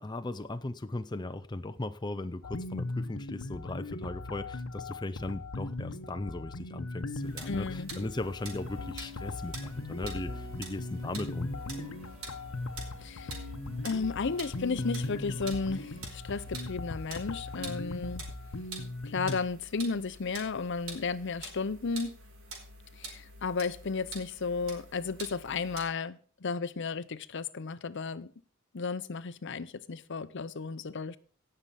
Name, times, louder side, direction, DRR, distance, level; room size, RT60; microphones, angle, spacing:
voice 1, 0.0-11.5, left 2 dB, 20° left, 0.5 m, -37 dB
sound 1, 2.4-19.4, left 2 dB, 90° left, 1.0 m, -39 dB
sound 2, 7.1-25.9, right 3 dB, 75° right, 4.9 m, -47 dB
voice 2, 7.5-7.9 13.0-13.4 13.8-18.2 19.0-22.1 23.0-28.3 28.7-31.2, left 4 dB, 60° left, 0.7 m, -34 dB
sound 3, 8.0-16.1, left 2 dB, 35° right, 4.1 m, -51 dB
17.5 x 6.7 x 5.7 m
head